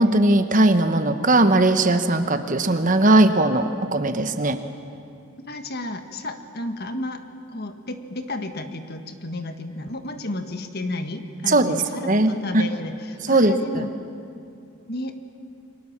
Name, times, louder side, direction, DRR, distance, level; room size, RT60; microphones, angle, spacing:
voice 1, 0.0-4.6 11.5-11.8 12.0-12.6 13.3-13.6, right 2 dB, 35° right, 8 dB, 1.2 m, -19 dB
voice 2, 5.4-7.2 7.5-13.9 14.9-15.2, left 1 dB, 45° left, 7 dB, 1.6 m, -32 dB
29.0 x 24.0 x 7.4 m, 2.5 s
head